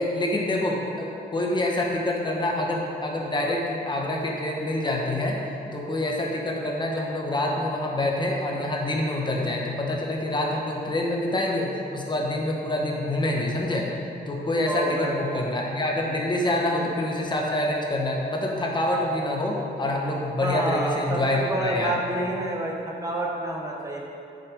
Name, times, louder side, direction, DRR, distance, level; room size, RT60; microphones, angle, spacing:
voice 1, 0.0-5.4 5.7-13.9 14.3-22.0, left 1 dB, 25° left, -2 dB, 1.2 m, -26 dB
voice 2, 14.7-15.4 16.5-16.9 20.4-24.0, right 1 dB, 15° right, -2 dB, 1.0 m, -28 dB
11.5 x 6.8 x 5.1 m, 2.7 s
wide cardioid pair, 170°, 18 cm